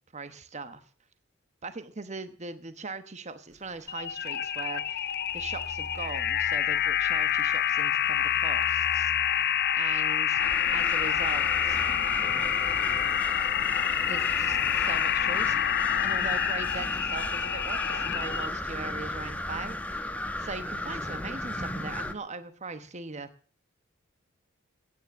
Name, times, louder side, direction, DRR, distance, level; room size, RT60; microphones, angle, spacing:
voice 1, 0.1-0.8 1.6-9.4 9.7-10.4 10.7-11.8 14.0-15.6 16.0-23.3, right 4 dB, 35° right, 11 dB, 1.1 m, -40 dB
sound 1, 3.5-19.6, right 1 dB, 55° right, 4.4 m, -48 dB
sound 2, 3.9-18.5, left 10 dB, 50° left, 0.8 m, -27 dB
sound 3, 10.4-22.1, left 1 dB, 5° left, 1.2 m, -34 dB
17.0 x 9.5 x 7.2 m, 0.41 s
head